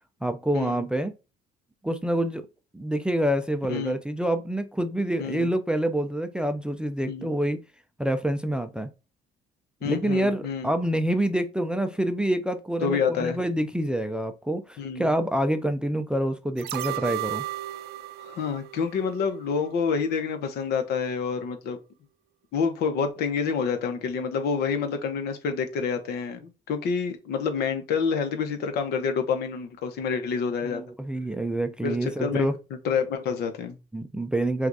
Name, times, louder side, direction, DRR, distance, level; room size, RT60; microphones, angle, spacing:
voice 1, 0.2-1.1 1.8-2.4 2.7-7.6 8.0-8.9 9.8-17.4 30.6-32.6 33.9-34.7, right 1 dB, 5° right, 0.4 m, -27 dB
voice 2, 9.8-10.7 12.8-13.4 14.8-15.1 18.2-21.8 22.5-30.8 31.8-32.5 32.8-33.8, left 6 dB, 70° left, 0.9 m, -28 dB
sound 1, 16.6-19.7 20.1-20.2, right 15 dB, 75° right, 0.4 m, -35 dB
5.8 x 2.4 x 2.6 m
cardioid pair, 110°, 17 cm